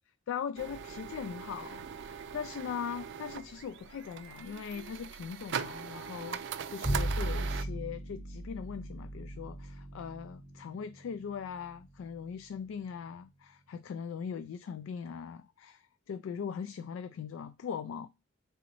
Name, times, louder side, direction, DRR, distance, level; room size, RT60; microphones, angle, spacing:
voice 1, 0.3-18.1, left 7 dB, 90° left, 0.3 m, -40 dB
sound 1, 0.6-7.6, right 7 dB, 65° right, 0.4 m, -41 dB
Bowed string instrument, 6.8-13.3, right 1 dB, 20° right, 2.3 m, -38 dB
4.0 x 3.6 x 2.9 m
head